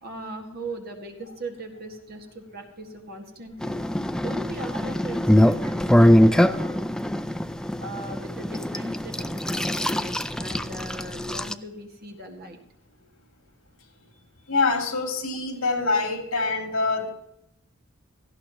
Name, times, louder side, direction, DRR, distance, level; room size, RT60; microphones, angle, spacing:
voice 1, 0.0-3.8 4.2-6.9 7.8-12.6, right 1 dB, 50° right, 4 dB, 2.0 m, -39 dB
sound 1, 3.6-11.5, equal, 5° left, 0.4 m, -22 dB
voice 2, 14.5-17.1, left 3 dB, 70° left, 2 dB, 2.9 m, -25 dB
18.0 x 15.0 x 3.0 m, 0.80 s
head